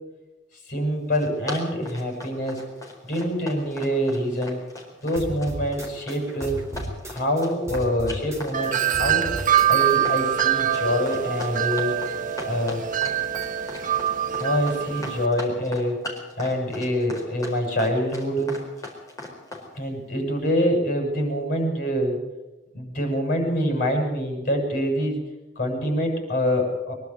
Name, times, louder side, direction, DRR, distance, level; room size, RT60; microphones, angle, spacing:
voice 1, 0.7-2.6 3.0-4.6 5.0-6.7 7.1-9.3 9.7-12.0 12.4-12.8 14.4-16.0 16.4-18.7 19.7-22.2 22.7-25.2 25.6-26.9, equal, 45° left, 2 dB, 7.1 m, -25 dB
Run, 0.9-19.7, left 2 dB, 20° left, 4.5 m, -38 dB
sound 1, 5.2-7.4 7.7-10.0, right 1 dB, 15° right, 3.9 m, -35 dB
Wind chime, 8.5-15.3, right 10 dB, 45° right, 1.0 m, -24 dB
23.0 x 11.5 x 9.6 m, 1.1 s
head